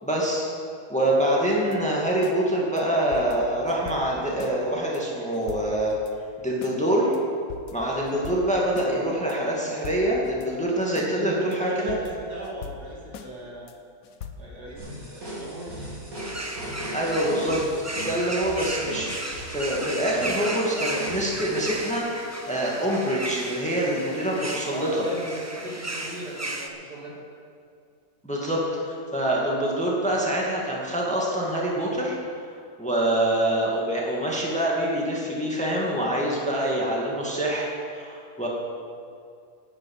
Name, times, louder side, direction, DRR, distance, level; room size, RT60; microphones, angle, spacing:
voice 1, 0.0-0.5 0.9-6.0 6.4-7.1 7.7-12.0 16.9-17.6 18.0-25.0 28.2-32.1 32.8-38.5, right 1 dB, 5° left, -4 dB, 2.1 m, -25 dB
sound 1, 1.5-2.4 2.8-2.9 3.1-4.6 4.9-5.0 5.3-6.1 6.6-6.8 7.1-7.2 7.5-8.9 9.3-9.4 9.7-10.5 11.0-11.1 11.5-11.6 11.9-13.3 13.7-13.8 14.0-14.3, left 6 dB, 65° left, 1.3 m, -42 dB
voice 2, 11.0-13.7 14.4-15.9 24.7-27.1, right 1 dB, 75° right, -5 dB, 3.2 m, -38 dB
sound 2, 14.8-22.0, equal, 60° right, 3.9 m, -37 dB
sound 3, 16.1-26.7, right 1 dB, 15° right, 0.7 m, -35 dB
11.0 x 9.0 x 8.8 m, 2.4 s
omnidirectional pair, 1.7 m